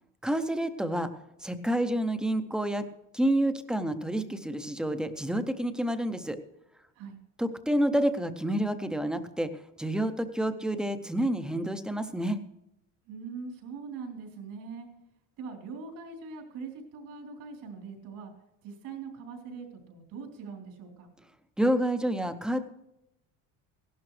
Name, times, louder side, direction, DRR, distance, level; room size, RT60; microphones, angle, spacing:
voice 1, 0.2-1.1 1.4-2.8 3.1-6.4 7.4-9.5 9.8-12.4 21.6-22.6, right 1 dB, ahead, 10 dB, 0.5 m, -28 dB
voice 2, 13.1-14.9 15.4-18.3 18.6-21.1, right 5 dB, 75° right, 0 dB, 3.6 m, -42 dB
17.0 x 12.0 x 3.2 m, 0.85 s
cardioid pair, 170°, 33 cm